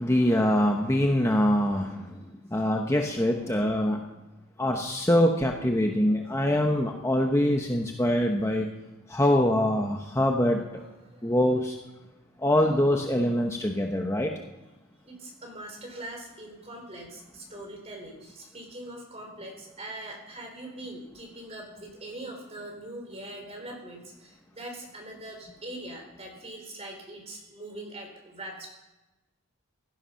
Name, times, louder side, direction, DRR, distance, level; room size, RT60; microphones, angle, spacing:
voice 1, 0.0-2.1 2.5-4.0 4.6-8.7 9.1-10.8 11.2-11.7 12.4-14.3, left 1 dB, 15° left, 2 dB, 1.0 m, -24 dB
voice 2, 3.3-3.6 6.4-6.5 10.6-11.3 12.3-12.5 13.9-14.0 15.0-28.7, right 1 dB, 30° right, 2 dB, 4.1 m, -42 dB
16.5 x 12.5 x 5.7 m, 1.0 s
head